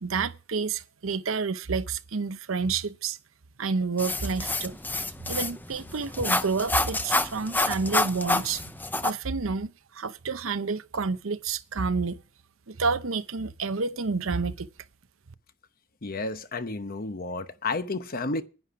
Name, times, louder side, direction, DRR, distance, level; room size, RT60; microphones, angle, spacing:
voice 1, 0.0-3.2 3.6-4.8 5.3-8.6 9.0-9.7 9.9-12.2 12.7-14.7, right 4 dB, 75° right, 0.8 m, -29 dB
sound 1, 4.0-9.1, left 2 dB, 10° left, 0.6 m, -28 dB
voice 2, 16.0-18.4, left 3 dB, 45° left, 0.9 m, -31 dB
10.5 x 10.0 x 5.9 m
head